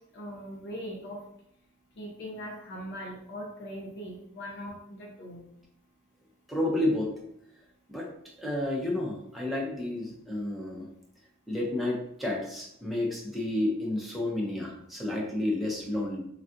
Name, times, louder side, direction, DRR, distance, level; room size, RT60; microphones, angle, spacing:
voice 1, 0.1-1.2 2.0-5.4, equal, 55° left, -1 dB, 0.6 m, -40 dB
voice 2, 6.5-7.1 7.9-8.1 8.4-10.9 11.5-16.2, left 1 dB, ahead, -3 dB, 0.6 m, -30 dB
3.3 x 2.4 x 2.6 m, 0.73 s
head